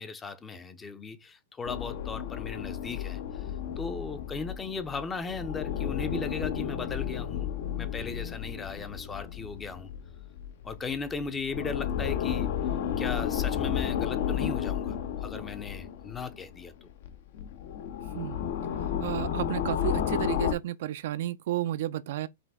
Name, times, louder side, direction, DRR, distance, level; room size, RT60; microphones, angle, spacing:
voice 1, 0.0-3.4 3.8-7.5 7.8-9.9 10.6-12.5 13.0-15.0 15.2-16.9, left 4 dB, 15° left, 0.5 m, -37 dB
sound 1, 1.6-16.7 17.0-20.5, left 9 dB, 60° left, 0.6 m, -32 dB
voice 2, 19.0-22.3, right 13 dB, 60° right, 0.4 m, -32 dB
5.1 x 2.5 x 3.5 m
hypercardioid pair, 145°, 0 cm